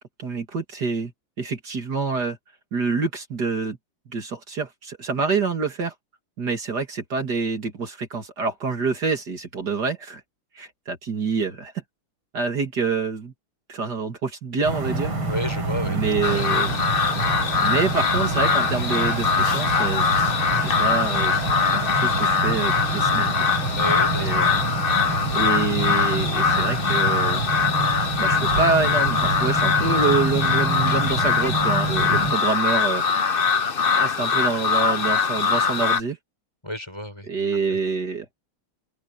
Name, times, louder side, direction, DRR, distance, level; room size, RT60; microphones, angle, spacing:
voice 1, 0.2-1.1 1.4-2.4 2.7-3.8 4.1-5.9 6.4-10.2 10.5-11.7 12.3-13.3 13.7-15.1 15.9-16.8 17.2-17.3 17.6-20.1 20.5-23.3 24.2-24.6 25.3-27.4 28.2-33.0 33.9-36.2 37.3-38.3, right 4 dB, 50° right, 2.8 m, -26 dB
sound 1, 14.6-32.3, right 2 dB, 85° right, 5.7 m, -27 dB
voice 2, 15.2-16.4 23.8-24.3 36.6-37.3 37.7-37.8, left 1 dB, 10° left, 6.9 m, -32 dB
sound 2, 16.2-36.0, left 5 dB, 40° left, 0.8 m, -22 dB
open air
omnidirectional pair, 2.3 m